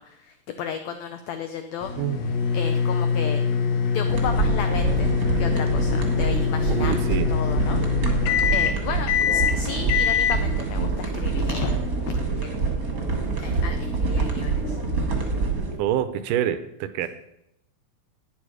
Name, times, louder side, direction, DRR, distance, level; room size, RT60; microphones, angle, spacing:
voice 1, 0.0-1.9 2.5-3.4 3.9-5.1 5.4-8.1 8.5-12.6 13.4-14.8 17.0-17.1, left 7 dB, 85° left, 8 dB, 1.5 m, -34 dB
sound 1, 1.8-12.1, left 6 dB, 65° left, 1.8 m, -24 dB
sound 2, 4.1-15.7, right 4 dB, 35° right, 1.5 m, -26 dB
voice 2, 6.7-7.3 15.8-17.1, right 10 dB, 80° right, 12 dB, 2.2 m, -26 dB
11.5 x 9.3 x 4.8 m, 0.79 s
omnidirectional pair, 3.9 m